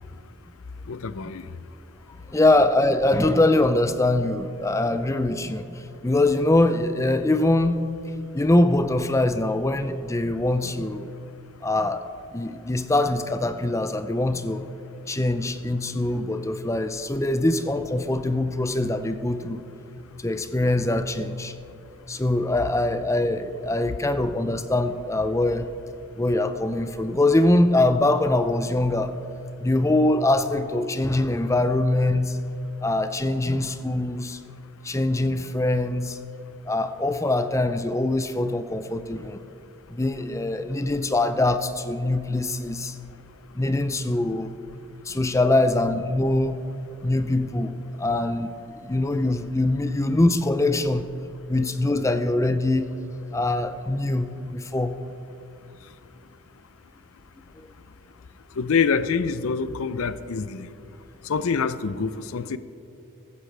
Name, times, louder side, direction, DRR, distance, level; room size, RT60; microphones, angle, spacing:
voice 1, 0.9-1.4 58.6-60.7 61.2-62.6, left 5 dB, 70° left, 14 dB, 0.5 m, -26 dB
voice 2, 2.3-7.8 8.3-11.1 11.6-12.0 12.3-14.7 15.1-19.6 20.2-21.5 22.1-25.7 26.2-29.1 29.6-32.4 32.8-34.4 34.8-36.2 36.7-39.4 39.9-43.0 43.5-44.6 45.1-46.6 47.0-51.1 51.5-52.9 53.3-54.9 57.6-57.7, left 2 dB, 15° left, 10 dB, 0.5 m, -23 dB
15.0 x 14.0 x 3.3 m, 2.8 s
head